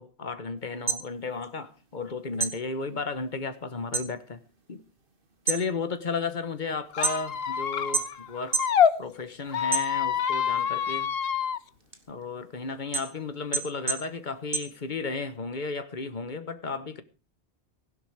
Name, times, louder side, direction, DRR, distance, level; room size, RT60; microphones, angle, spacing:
voice 1, 0.0-4.4 4.7-4.8 5.5-8.6 9.0-11.1 12.1-17.0, left 4 dB, 45° left, 1.4 m, -34 dB
sound 1, 0.7-2.1 2.4-4.1 4.5-4.9 5.3-7.5 7.9-8.8 9.2-10.4 10.8-15.3, right 4 dB, 55° right, 1.8 m, -31 dB
Squeak, 6.9-8.9 9.5-11.6, left 8 dB, 65° left, 1.1 m, -26 dB
16.5 x 11.0 x 4.8 m
omnidirectional pair, 1.1 m